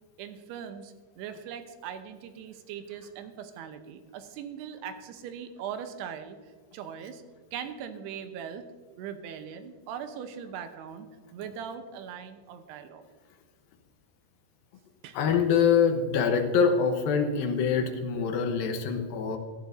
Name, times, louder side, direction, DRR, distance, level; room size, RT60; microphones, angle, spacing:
voice 1, 0.2-7.2 7.5-8.6 9.0-13.0 15.0-15.2, right 8 dB, 80° right, 8 dB, 2.7 m, -40 dB
voice 2, 15.1-19.4, left 6 dB, 70° left, 4 dB, 2.3 m, -24 dB
18.0 x 11.5 x 2.6 m, 1.5 s
omnidirectional pair, 5.1 m